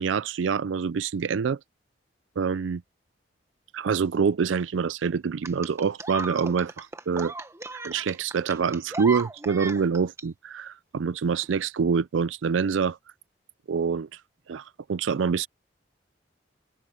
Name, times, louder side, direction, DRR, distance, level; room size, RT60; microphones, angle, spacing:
voice 1, 0.0-1.6 2.4-2.8 3.7-7.3 7.7-13.0 13.7-14.2 14.5-15.5, right 6 dB, 85° right, 0.4 m, -26 dB
sound 1, 5.4-10.2 11.4-11.5, right 3 dB, 15° right, 1.1 m, -36 dB
open air
head